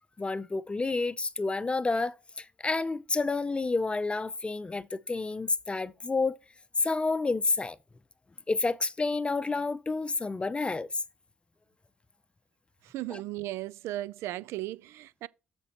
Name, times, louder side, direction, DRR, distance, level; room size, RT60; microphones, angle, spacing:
voice 1, 0.2-6.4 6.8-7.8 8.5-10.9 13.1-13.2, left 3 dB, 25° left, 0.6 m, -29 dB
voice 2, 12.8-15.3, right 15 dB, 85° right, 0.4 m, -36 dB
13.5 x 5.3 x 3.0 m
supercardioid pair, 70°, 5 cm